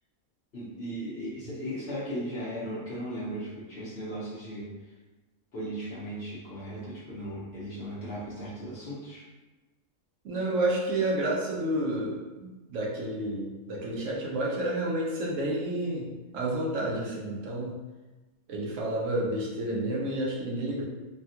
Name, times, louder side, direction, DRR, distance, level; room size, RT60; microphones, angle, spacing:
voice 1, 0.5-4.7 5.5-9.2, equal, 55° left, -8 dB, 1.0 m, -37 dB
voice 2, 10.2-12.2 12.7-17.8 18.5-20.8, right 1 dB, 70° right, -3 dB, 1.0 m, -30 dB
3.3 x 2.2 x 2.8 m, 1.2 s
omnidirectional pair, 1.4 m